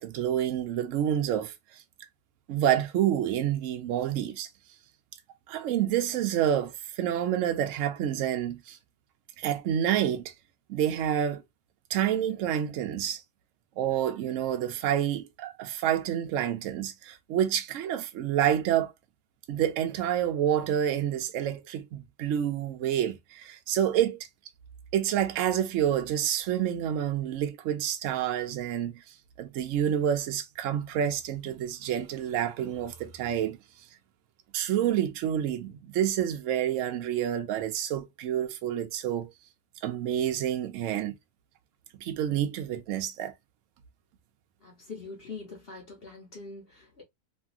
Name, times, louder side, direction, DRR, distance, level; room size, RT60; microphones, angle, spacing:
voice 1, 0.0-1.8 2.5-4.5 5.5-8.8 9.4-10.3 10.7-11.4 11.9-13.2 13.8-18.9 19.5-24.2 24.9-29.0 29.4-33.6 34.5-39.3 39.8-41.1 42.0-43.3, right 10 dB, 65° right, 0.9 m, -28 dB
voice 2, 44.6-47.0, left 4 dB, 40° left, 1.1 m, -43 dB
3.0 x 2.6 x 2.3 m
omnidirectional pair, 1.6 m